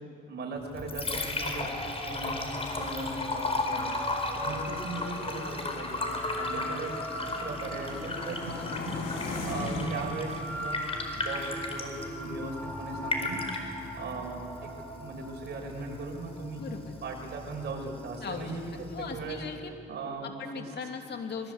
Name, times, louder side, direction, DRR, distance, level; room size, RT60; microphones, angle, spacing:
voice 1, 0.3-1.7 2.0-3.8 4.4-6.0 6.3-6.9 7.2-8.9 9.4-10.8 11.1-13.4 14.0-14.7 14.9-16.6 17.0-18.6 19.1-19.4 19.9-20.7, right 3 dB, 60° right, 0 dB, 6.5 m, -38 dB
Liquid, 0.6-19.6, left 2 dB, 30° left, 4.6 m, -36 dB
sound 1, 3.2-9.9, left 3 dB, 85° left, 4.7 m, -40 dB
sound 2, 3.6-18.3, equal, 10° left, 6.7 m, -41 dB
voice 2, 16.6-16.9 18.2-18.6 18.9-19.7 20.2-21.5, left 5 dB, 55° left, 4 dB, 3.0 m, -38 dB
25.5 x 22.5 x 8.2 m, 2.6 s
cardioid pair, 90°, 20 cm